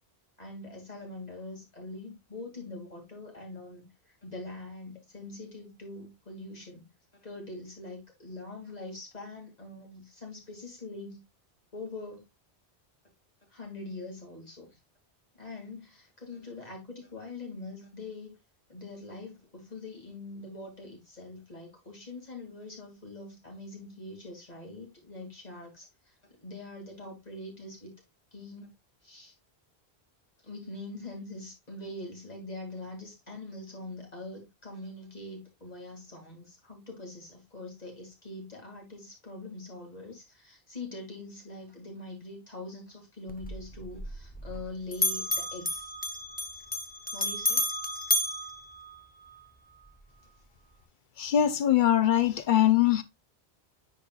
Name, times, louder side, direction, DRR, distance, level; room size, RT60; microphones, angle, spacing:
voice 1, 0.4-6.9 7.2-11.2 11.7-12.3 13.5-14.8 15.3-18.4 18.7-26.1 26.4-27.9 28.3-28.7 29.0-29.3 30.4-45.9 47.1-47.7, left 2 dB, 40° left, 2.5 m, -43 dB
Bell, 43.3-44.7 44.9-49.4, left 1 dB, 10° left, 0.7 m, -32 dB
voice 2, 51.2-53.0, left 11 dB, 55° left, 0.7 m, -22 dB
10.0 x 4.2 x 2.3 m
omnidirectional pair, 1.1 m